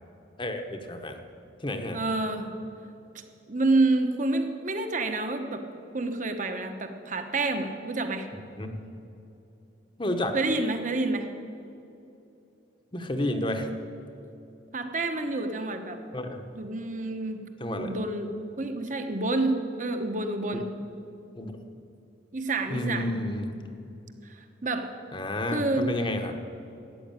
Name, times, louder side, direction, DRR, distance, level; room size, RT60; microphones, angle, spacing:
voice 1, 0.4-1.2 1.6-2.0 8.3-8.8 10.0-10.4 12.9-13.7 16.1-16.4 17.6-17.9 21.4-21.5 22.7-23.6 25.1-26.4, left 1 dB, 25° left, 6 dB, 1.1 m, -31 dB
voice 2, 1.9-2.5 3.5-5.6 5.9-8.3 10.3-11.3 14.7-16.0 16.5-17.4 17.8-20.6 22.3-23.2 24.2-24.9 25.5-25.9, right 2 dB, 40° right, 6 dB, 1.2 m, -28 dB
13.5 x 9.5 x 9.0 m, 2.8 s
head